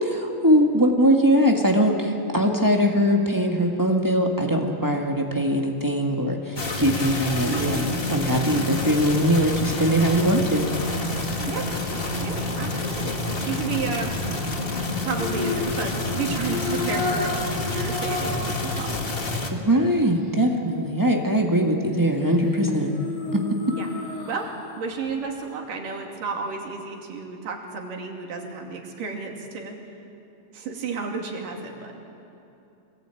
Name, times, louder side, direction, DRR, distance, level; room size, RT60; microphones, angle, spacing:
voice 1, 0.0-10.7 19.5-22.9 23.3-23.4, equal, 15° right, 1 dB, 0.6 m, -21 dB
sound 1, 6.6-19.5, left 2 dB, 35° left, 0.9 m, -28 dB
sound 2, 7.3-11.6 15.2-18.5 18.9-19.0 21.8-24.7 25.1-25.2, left 3 dB, 70° left, 4.2 m, -33 dB
voice 2, 12.2-14.2 15.0-19.3 23.7-23.9 24.2-24.5 24.8-29.8 30.5-31.9, right 5 dB, 90° right, 1 dB, 4.2 m, -32 dB
25.5 x 20.0 x 9.1 m, 2.9 s
omnidirectional pair, 3.7 m